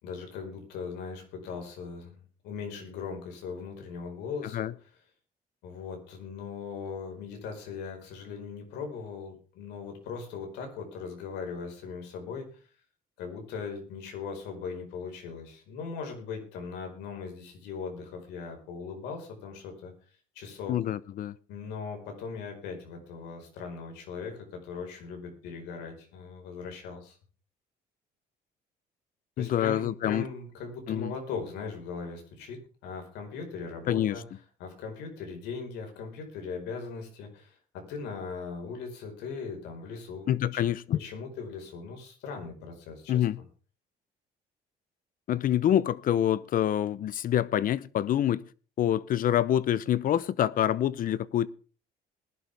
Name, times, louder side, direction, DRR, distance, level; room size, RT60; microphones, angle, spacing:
voice 1, 0.0-4.7 5.6-12.6 13.2-19.9 20.3-20.7 21.5-27.2 29.4-34.2 34.6-40.7 40.9-43.4, left 5 dB, 90° left, 4.9 m, -39 dB
voice 2, 20.7-21.3 29.4-30.3 30.9-31.1 33.9-34.2 40.3-41.0 43.1-43.4 45.3-48.4 48.8-51.5, left 11 dB, 55° left, 0.8 m, -26 dB
19.5 x 11.0 x 3.5 m
cardioid pair, 110°, 17 cm